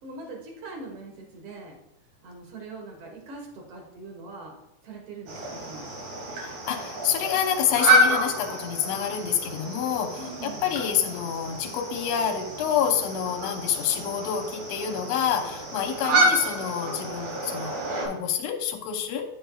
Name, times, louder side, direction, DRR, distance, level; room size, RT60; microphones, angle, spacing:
voice 1, 0.0-1.7 2.2-4.6 4.8-6.0 10.2-10.8 16.0-16.5, right 3 dB, 55° right, 1 dB, 2.1 m, -42 dB
sound 1, 5.3-18.1, right 1 dB, 80° right, 3.6 m, -28 dB
voice 2, 6.3-17.7 18.0-19.2, left 8 dB, 65° left, 3 dB, 1.8 m, -27 dB
10.5 x 6.5 x 2.3 m, 0.86 s
omnidirectional pair, 3.9 m